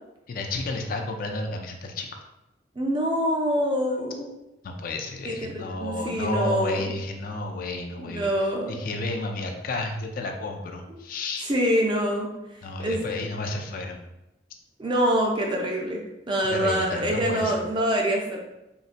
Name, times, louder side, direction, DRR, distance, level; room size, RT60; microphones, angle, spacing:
voice 1, 0.3-2.2 4.6-8.3 8.7-11.5 12.6-14.0 16.5-17.6, left 2 dB, 50° left, 3 dB, 0.3 m, -31 dB
voice 2, 2.8-4.3 5.2-6.9 8.0-8.8 10.9-11.0 11.4-12.3 12.8-13.1 14.8-18.4, equal, 25° right, 0 dB, 0.5 m, -25 dB
3.8 x 2.1 x 2.5 m, 0.91 s
head